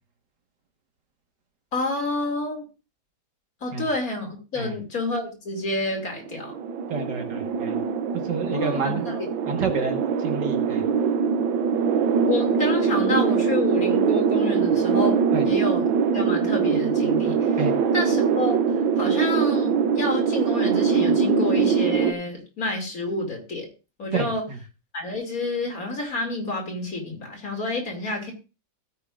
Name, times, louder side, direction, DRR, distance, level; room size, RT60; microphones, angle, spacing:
voice 1, 1.7-2.6 3.6-6.6 8.5-9.3 12.2-15.2 15.4-15.8 16.1-17.6 17.9-18.6 19.0-23.7 24.0-24.4 24.9-28.3, left 2 dB, 45° left, 3 dB, 3.0 m, -29 dB
sound 1, 6.2-22.1, right 6 dB, 85° right, 1.6 m, -23 dB
voice 2, 6.9-7.8 8.2-9.1 9.5-10.9 15.3-15.4 17.6-17.7 24.1-24.6, right 4 dB, 65° right, 4 dB, 2.2 m, -29 dB
16.0 x 9.7 x 2.5 m, 0.31 s
omnidirectional pair, 2.0 m